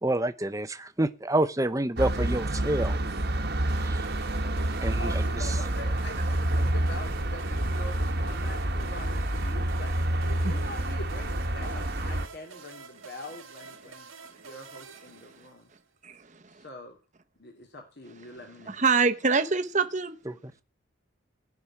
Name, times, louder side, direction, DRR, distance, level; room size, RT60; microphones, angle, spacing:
voice 1, 0.0-3.0 3.8-4.1 4.8-5.2 20.3-20.4, right 1 dB, 15° right, 0.8 m, -28 dB
sound 1, 2.0-12.3, right 1 dB, 55° right, 1.5 m, -28 dB
sound 2, 3.7-15.9, right 4 dB, 90° right, 2.1 m, -48 dB
voice 2, 4.9-14.1 14.4-15.7 16.5-17.0 17.4-18.7, left 1 dB, 55° left, 2.7 m, -44 dB
voice 3, 18.7-20.2, right 4 dB, 35° right, 1.1 m, -24 dB
18.0 x 6.2 x 9.9 m
head